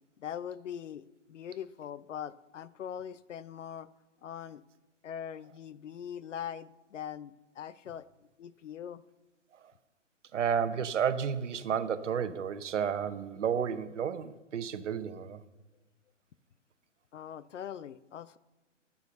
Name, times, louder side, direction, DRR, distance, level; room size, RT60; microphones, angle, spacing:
voice 1, 0.2-3.9 4.2-4.6 5.0-8.1 8.4-9.0 17.1-18.4, left 9 dB, 75° left, 18 dB, 0.6 m, -42 dB
voice 2, 10.3-15.4, right 7 dB, 70° right, 13 dB, 0.9 m, -31 dB
11.0 x 6.9 x 6.7 m, 1.1 s
hypercardioid pair, 130°, 37 cm